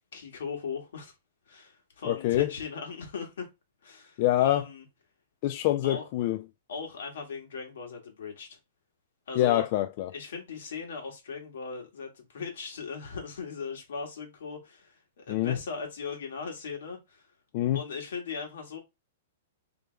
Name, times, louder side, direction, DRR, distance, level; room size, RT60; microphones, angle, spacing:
voice 1, 0.1-1.1 1.5-3.5 3.8-4.8 5.8-6.1 6.7-8.6 9.3-9.7 10.1-17.3 17.7-18.8, left 5 dB, 75° left, 1.9 m, -38 dB
voice 2, 2.0-2.5 4.2-4.6 5.4-6.4 9.4-10.1 15.3-15.6 17.5-17.8, left 14 dB, 35° left, 0.3 m, -25 dB
3.5 x 3.3 x 3.3 m
hypercardioid pair, 170°, 0 cm